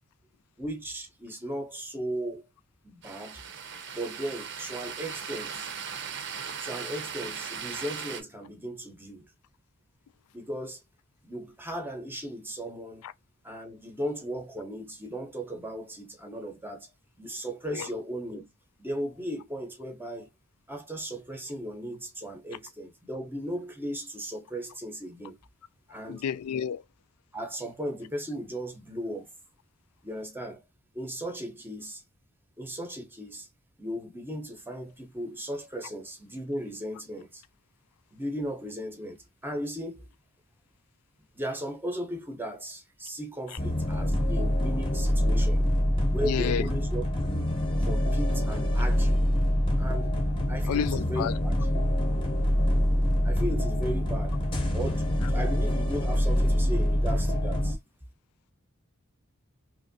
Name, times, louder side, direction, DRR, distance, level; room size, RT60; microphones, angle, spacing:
voice 1, 0.6-2.5 2.8-3.4 3.9-5.7 6.6-9.3 10.3-10.8 11.2-13.0 13.4-16.9 17.2-18.5 18.8-20.3 20.7-25.4 25.9-26.2 27.3-29.3 30.0-30.6 30.9-32.0 32.6-33.5 33.8-37.4 38.1-40.1 41.3-45.6 46.1-47.5 47.8-49.2 49.8-50.1 50.5-51.5 53.2-54.4 54.7-57.8, equal, 10° right, 0.7 m, -36 dB
sound 1, 3.0-8.2, right 7 dB, 55° right, 0.6 m, -38 dB
voice 2, 26.1-26.8 43.5-43.6 46.2-46.7 50.7-51.3, left 8 dB, 90° left, 0.3 m, -30 dB
sound 2, 43.6-57.7, equal, 25° left, 0.7 m, -25 dB
3.0 x 2.6 x 2.6 m
head